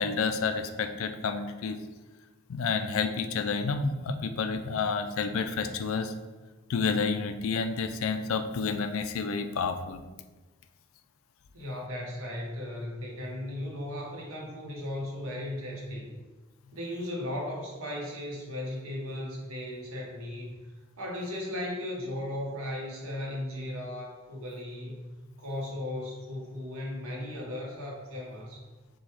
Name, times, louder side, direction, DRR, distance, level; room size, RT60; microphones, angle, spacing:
voice 1, 0.0-1.8 2.5-6.1 6.7-10.0, left 5 dB, 70° left, 8 dB, 0.4 m, -30 dB
voice 2, 11.5-16.2 16.7-20.5 21.0-25.0 25.4-28.6, left 1 dB, 80° right, -2 dB, 1.1 m, -36 dB
6.1 x 2.3 x 3.3 m, 1.2 s
head